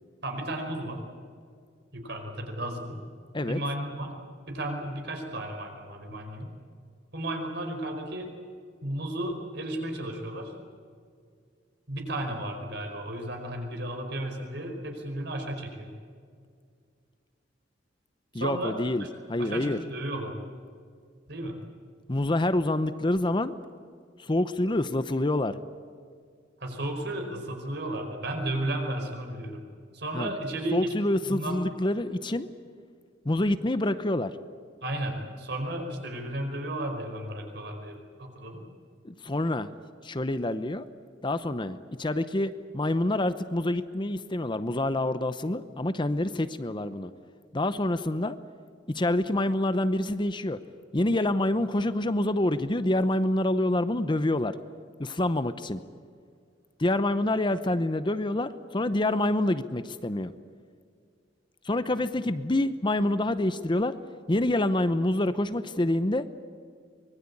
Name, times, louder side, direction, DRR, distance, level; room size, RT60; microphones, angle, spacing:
voice 1, 0.2-1.0 1.9-3.0 3.4-4.1 4.5-6.5 7.1-8.3 8.8-10.5 11.9-15.9 18.3-19.1 19.4-20.3 21.3-21.6 26.6-29.6 29.9-30.9 31.3-31.6 34.8-38.6, right 1 dB, 60° right, 4 dB, 4.9 m, -34 dB
voice 2, 18.3-19.8 22.1-23.5 24.2-25.6 30.1-30.3 30.7-32.5 33.2-34.4 39.0-39.7 40.0-40.9 41.2-47.1 47.5-48.4 48.9-50.6 50.9-54.6 55.0-55.8 56.8-60.3 61.6-64.0 64.3-66.3, left 1 dB, 25° left, 12 dB, 0.8 m, -27 dB
24.5 x 21.0 x 8.6 m, 2.2 s
head